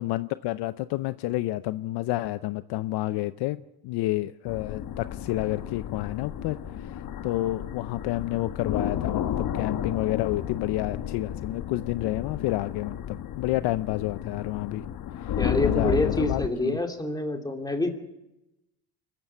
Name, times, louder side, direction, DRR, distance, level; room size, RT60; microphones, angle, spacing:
voice 1, 0.0-7.0 7.2-14.8 15.2-15.3 15.6-16.8, left 17 dB, 60° left, 14 dB, 0.7 m, -29 dB
sound 1, 4.5-16.5, left 10 dB, 45° left, 1.3 m, -32 dB
voice 2, 15.4-17.9, left 2 dB, 10° left, 4 dB, 2.6 m, -27 dB
25.0 x 14.5 x 8.5 m, 0.95 s
cardioid pair, 130°, 46 cm